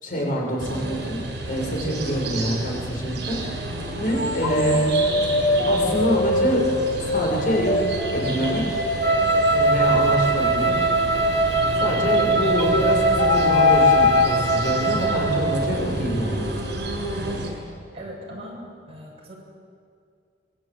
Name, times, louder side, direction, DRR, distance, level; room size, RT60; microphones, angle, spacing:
voice 1, 0.0-4.9 5.6-6.7 7.0-8.8 9.5-10.8 11.8-16.5, equal, 50° left, -1 dB, 6.3 m, -26 dB
sound 1, 0.6-17.5, right 1 dB, 70° right, 6.9 m, -31 dB
sound 2, 2.5-2.7 4.1-11.5 12.6-14.3, left 4 dB, 75° left, 3.0 m, -23 dB
Wind instrument woodwind instrument, 9.0-15.4, right 3 dB, 85° right, 2.4 m, -21 dB
voice 2, 17.9-18.6 18.9-19.3, equal, 35° right, -2 dB, 7.9 m, -39 dB
25.5 x 21.5 x 9.0 m, 2.3 s
head